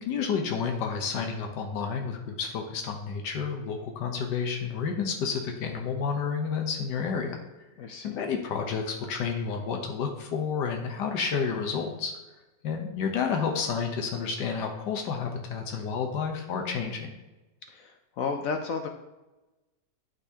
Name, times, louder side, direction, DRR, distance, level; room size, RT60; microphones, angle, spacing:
voice 1, 0.0-7.4 8.0-12.1 12.6-17.1, left 6 dB, 90° left, 3 dB, 1.5 m, -30 dB
voice 2, 7.8-8.2 17.7-17.9 18.2-18.9, left 5 dB, 65° left, 5 dB, 0.9 m, -32 dB
11.5 x 4.0 x 2.8 m, 1.1 s
omnidirectional pair, 1.8 m